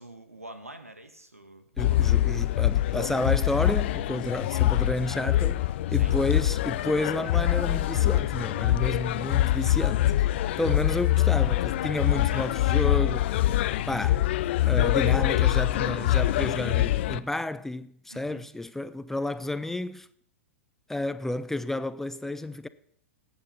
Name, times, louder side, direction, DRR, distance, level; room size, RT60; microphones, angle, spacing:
voice 1, 0.0-2.2 4.4-4.6 6.0-6.2 12.3-12.6 18.1-18.5, right 1 dB, 90° right, 1.6 m, -46 dB
sound 1, 1.8-17.2, left 14 dB, 50° left, 0.6 m, -24 dB
voice 2, 1.8-10.1 10.6-13.3 13.9-14.3 14.6-20.1 20.9-22.7, left 2 dB, 5° left, 0.5 m, -31 dB
17.5 x 9.0 x 5.6 m
figure-of-eight pair, 100°, 8 cm